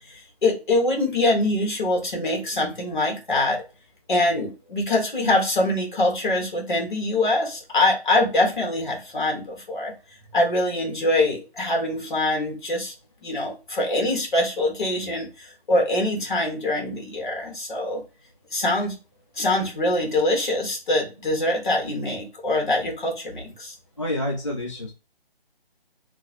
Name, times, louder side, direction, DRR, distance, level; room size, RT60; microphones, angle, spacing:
voice 1, 0.0-3.6 4.1-9.9 10.3-12.9 13.2-18.0 18.5-18.9 19.3-23.7, left 2 dB, 55° left, 0 dB, 1.3 m, -24 dB
voice 2, 24.0-24.9, left 1 dB, 30° left, -1 dB, 0.4 m, -28 dB
3.0 x 2.6 x 2.8 m, 0.30 s
figure-of-eight pair, 150°, 30 cm